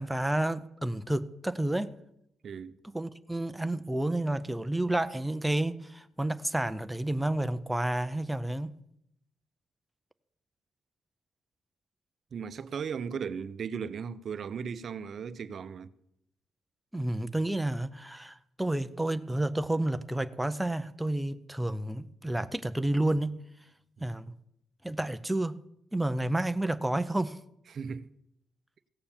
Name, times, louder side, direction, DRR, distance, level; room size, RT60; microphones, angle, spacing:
voice 1, 0.0-2.0 2.8-8.7 16.9-23.4 24.0-24.3 24.8-25.6 25.9-27.4, right 1 dB, 5° right, 0.5 m, -30 dB
voice 2, 2.4-2.8 12.3-15.9 27.7-28.1, right 6 dB, 50° right, 0.6 m, -37 dB
16.0 x 6.8 x 7.2 m
cardioid pair, 120°, 0 cm